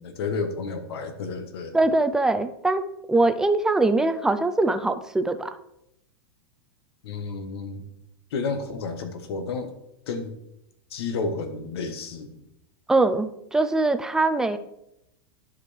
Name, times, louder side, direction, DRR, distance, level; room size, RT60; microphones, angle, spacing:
voice 1, 0.0-1.7 7.0-7.8 8.3-9.8 10.1-10.3 10.9-12.5, left 4 dB, 80° left, 8 dB, 1.3 m, -31 dB
voice 2, 1.7-5.5 12.9-14.6, right 2 dB, 5° right, 9 dB, 0.3 m, -22 dB
11.5 x 5.2 x 3.3 m, 0.82 s
supercardioid pair, 155°, 13 cm